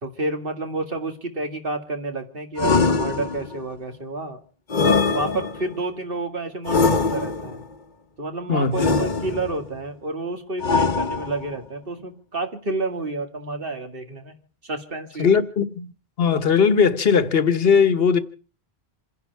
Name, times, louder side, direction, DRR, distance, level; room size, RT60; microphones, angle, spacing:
voice 1, 0.0-4.4 4.8-7.6 8.2-14.3 14.6-15.3, right 2 dB, 60° right, 2.3 m, -30 dB
sound 1, 2.6-3.6 4.7-5.8 6.6-7.6 8.7-9.6 10.6-11.6, left 4 dB, 50° left, 1.1 m, -22 dB
voice 2, 8.5-8.9 15.2-15.9 16.2-18.2, left 6 dB, 70° left, 1.4 m, -19 dB
28.0 x 11.0 x 4.6 m
omnidirectional pair, 1.1 m